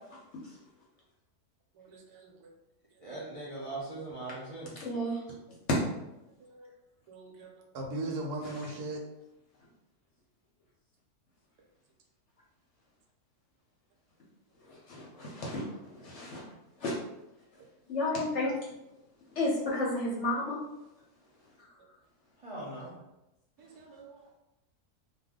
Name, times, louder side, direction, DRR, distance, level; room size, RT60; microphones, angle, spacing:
voice 1, 1.7-2.6 2.9-3.5 4.3-4.4 6.4-6.7 7.1-9.0 15.6-15.7 23.6-24.3, right 2 dB, 80° right, 1 dB, 1.2 m, -41 dB
voice 2, 3.0-4.7 22.4-22.9, right 2 dB, 45° right, -7 dB, 0.4 m, -40 dB
voice 3, 4.8-5.2 14.7-15.6 16.0-16.4 16.8-16.9 17.9-18.5 19.4-20.6, left 1 dB, 60° left, -4 dB, 0.8 m, -32 dB
2.6 x 2.3 x 3.5 m, 0.94 s
omnidirectional pair, 1.7 m